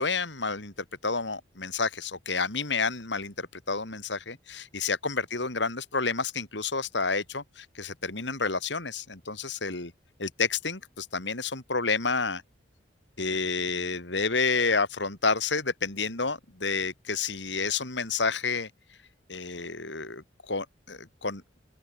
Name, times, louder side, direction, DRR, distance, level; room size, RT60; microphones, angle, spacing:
voice 1, 0.0-9.9 10.2-12.4 13.2-18.7 19.3-21.4, left 4 dB, 75° left, 3.5 m, -30 dB
open air
head